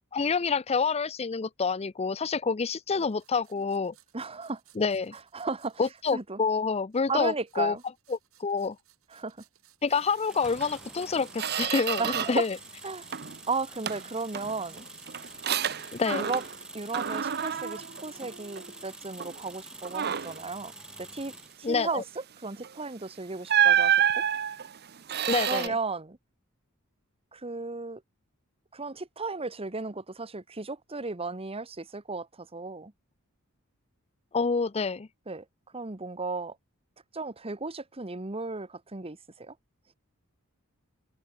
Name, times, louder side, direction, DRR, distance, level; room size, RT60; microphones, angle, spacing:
voice 1, 0.1-3.9 4.8-5.1 5.8-7.7 8.1-8.8 9.8-12.6 15.9-16.3 21.6-22.0 25.3-25.7 34.3-35.1, left 5 dB, 30° left, 0.5 m, -28 dB
sound 1, 3.0-6.2 6.9-11.6 12.2-16.7, right 13 dB, 70° right, 6.9 m, -64 dB
voice 2, 4.1-4.6 5.1-5.8 6.1-6.4 7.1-7.8 9.1-9.4 12.0-12.4 12.8-13.1 13.5-14.9 16.0-16.4 16.7-20.7 21.0-21.3 21.6-24.2 25.4-26.2 27.3-28.0 28.7-32.9 35.3-35.4 35.7-36.6 37.1-39.5, right 3 dB, 25° right, 1.2 m, -35 dB
sound 2, 10.3-21.6, right 1 dB, 5° right, 1.3 m, -47 dB
Squeak, 10.6-10.7 11.1-12.5 12.8-13.4 13.9-16.7 16.9-18.8 19.2-19.4 19.8-20.5 22.6-22.8 23.5-25.7, right 9 dB, 45° right, 0.8 m, -29 dB
head